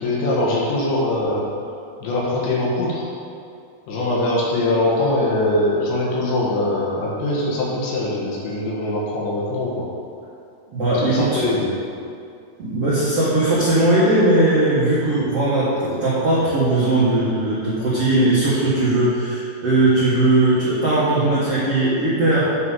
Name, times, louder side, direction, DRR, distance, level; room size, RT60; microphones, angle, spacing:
voice 1, 0.0-1.5 2.0-3.1 3.9-9.9 11.0-11.7, left 2 dB, 70° left, -5 dB, 3.7 m, -22 dB
voice 2, 10.7-11.4 12.6-22.5, right 2 dB, 85° right, -10 dB, 1.3 m, -18 dB
9.5 x 4.8 x 5.6 m, 2.4 s
omnidirectional pair, 5.5 m